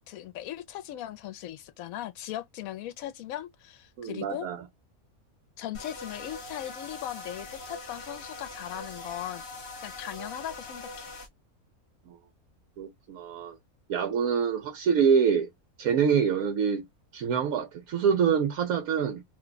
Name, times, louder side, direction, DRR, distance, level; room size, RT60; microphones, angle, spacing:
voice 1, 0.1-4.5 5.6-11.1, left 12 dB, 75° left, 1.0 m, -38 dB
voice 2, 4.0-4.6 12.1-12.2 12.8-13.5 13.9-15.5 15.8-16.8 17.1-19.2, right 7 dB, 80° right, 1.1 m, -25 dB
sound 1, 5.7-11.3, left 3 dB, 50° left, 1.2 m, -42 dB
2.8 x 2.2 x 3.8 m
omnidirectional pair, 1.5 m